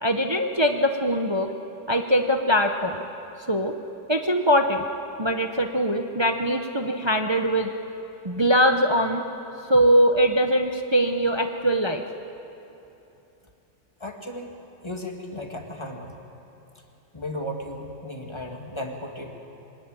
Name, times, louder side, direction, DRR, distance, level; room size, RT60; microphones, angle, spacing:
voice 1, 0.0-1.5 1.9-3.0 3.5-3.7 4.1-4.8 5.2-7.7 8.2-9.2 9.7-12.0, equal, 30° right, 5 dB, 0.4 m, -22 dB
voice 2, 14.0-14.5 14.8-16.2 17.1-19.4, left 1 dB, 15° left, 2 dB, 2.1 m, -35 dB
24.5 x 20.0 x 9.1 m, 2.9 s
omnidirectional pair, 2.1 m